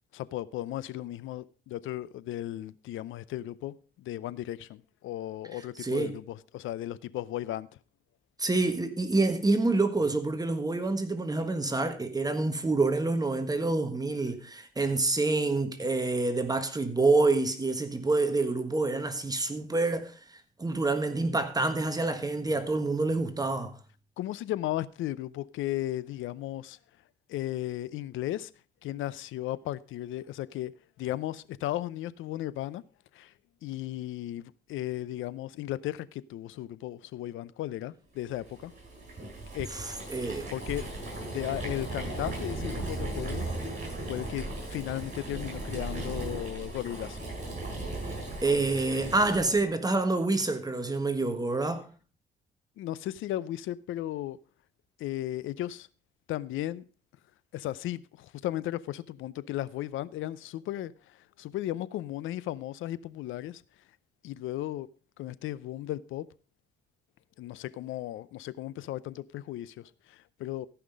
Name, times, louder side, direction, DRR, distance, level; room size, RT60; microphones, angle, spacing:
voice 1, 0.1-7.7 24.2-26.8 27.3-28.5 28.8-30.7 31.0-32.8 33.1-33.3 33.6-38.7 39.5-39.7 40.0-40.1 40.5-43.5 44.1-44.4 44.7-47.2 52.8-54.4 55.0-55.9 56.3-56.8 57.5-63.6 64.2-64.9 65.2-66.3 67.4-70.7, left 14 dB, 80° left, 0.6 m, -35 dB
voice 2, 5.8-6.2 8.4-23.8 39.7-40.5 48.4-51.9, right 3 dB, 20° right, 1.4 m, -27 dB
Boiling, 38.4-49.7, right 2 dB, 40° right, 7.6 m, -37 dB
14.5 x 5.9 x 5.1 m
cardioid pair, 90°, 20 cm